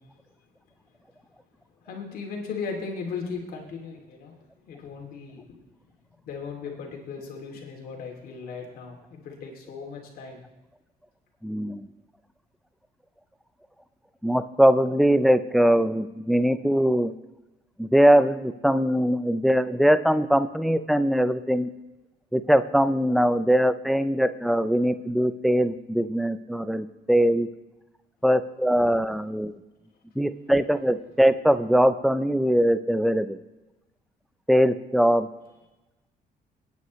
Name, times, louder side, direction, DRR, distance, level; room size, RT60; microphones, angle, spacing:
voice 1, 1.8-4.3 4.6-5.6 6.3-10.4, left 5 dB, 70° left, 0 dB, 2.6 m, -37 dB
voice 2, 11.4-11.8 14.2-17.1 17.8-21.7 22.3-27.5 28.2-29.5 30.2-33.4 34.5-35.3, equal, ahead, 11 dB, 0.5 m, -21 dB
29.0 x 9.6 x 3.1 m, 1.0 s
cardioid pair, 165°, 16 cm